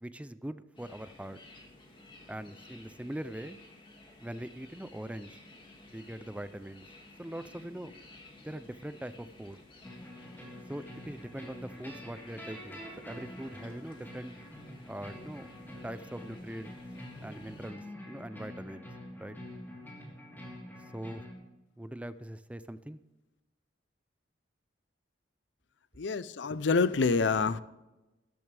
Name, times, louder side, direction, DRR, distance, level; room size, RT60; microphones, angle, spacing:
voice 1, 0.0-1.4 2.3-3.6 4.2-5.4 5.9-6.9 7.2-8.0 8.4-9.6 10.7-14.4 14.9-15.5 15.8-16.7 17.2-18.9 19.2-19.4 20.9-21.3 21.8-23.0, right 1 dB, 5° right, 13 dB, 0.4 m, -42 dB
sound 1, 0.7-17.7, left 2 dB, 25° left, 2.2 m, -55 dB
sound 2, 9.8-21.3, left 1 dB, 10° left, 3.5 m, -46 dB
voice 2, 26.0-27.6, left 4 dB, 70° left, 15 dB, 0.6 m, -27 dB
13.5 x 12.0 x 3.4 m, 1.0 s
head